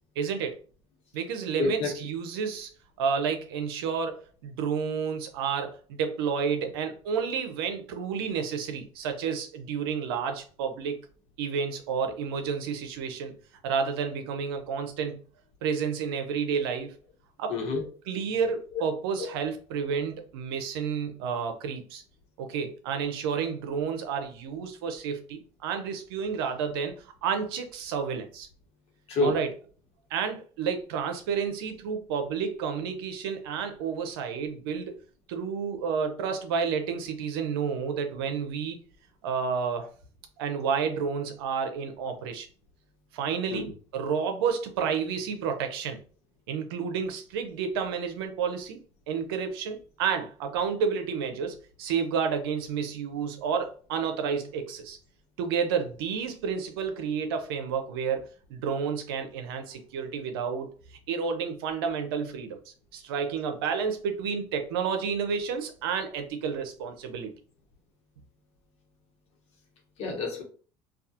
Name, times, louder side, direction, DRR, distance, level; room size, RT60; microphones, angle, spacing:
voice 1, 0.2-0.6 1.1-2.7 3.0-11.0 11.4-13.3 13.6-15.2 15.6-16.9 17.4-17.6 18.1-22.0 22.4-26.9 27.2-28.5 29.2-29.5 30.1-35.0 35.3-38.8 39.2-39.9 40.4-42.5 43.1-46.0 46.5-48.8 49.1-55.0 55.4-60.7 61.1-62.6 62.9-67.3, right 6 dB, 85° right, 6 dB, 0.5 m, -30 dB
voice 2, 1.6-1.9 17.5-17.8 29.1-29.4 43.5-43.6 70.0-70.4, left 3 dB, 60° left, 1 dB, 1.1 m, -27 dB
2.3 x 2.3 x 2.8 m, 0.40 s
supercardioid pair, 85°, 12 cm